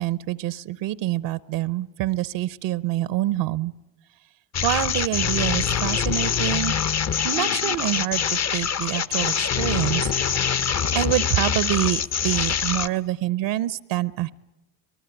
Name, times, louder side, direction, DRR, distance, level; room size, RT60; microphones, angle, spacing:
voice 1, 0.0-3.7 4.6-6.7 7.2-10.1 10.9-14.3, right 14 dB, 70° right, 18 dB, 0.8 m, -26 dB
sound 1, 4.5-12.9, left 7 dB, 35° left, 0.8 m, -24 dB
24.5 x 19.0 x 9.9 m, 0.99 s
supercardioid pair, 95°, 46 cm